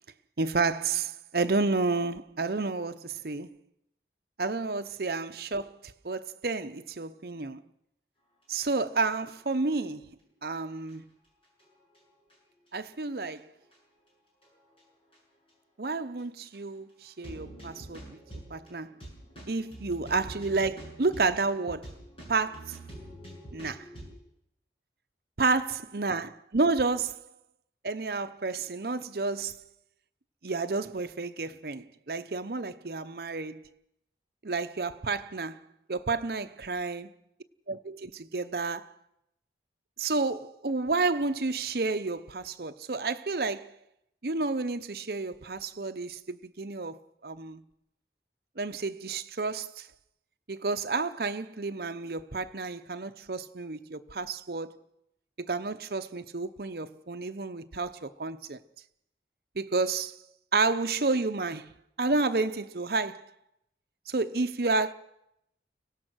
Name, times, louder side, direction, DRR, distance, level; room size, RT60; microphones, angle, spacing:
voice 1, 0.4-3.6 4.4-5.7 6.0-7.6 8.5-10.1 10.4-11.1 12.7-13.5 15.8-18.2 18.5-19.0 19.5-21.9 22.3-22.8 23.5-23.9 25.4-27.3 27.8-29.5 30.4-33.6 34.4-35.6 35.9-37.1 37.7-38.9 40.0-43.7 44.2-47.6 48.6-49.9 50.5-54.8 55.4-58.6 59.6-60.2 60.5-63.3 64.1-64.9, right 3 dB, 60° right, 0.8 m, -30 dB
sound 1, 8.9-9.5 9.8-9.9 10.5-10.6 10.9-11.0 11.4-12.3 13.0-13.4 13.7-13.8 14.4-14.8 15.1-15.2 15.5-15.6 16.2-16.3 16.5-16.6 17.1-24.1, right 1 dB, 30° left, 7.6 m, -46 dB
24.0 x 17.0 x 6.3 m
head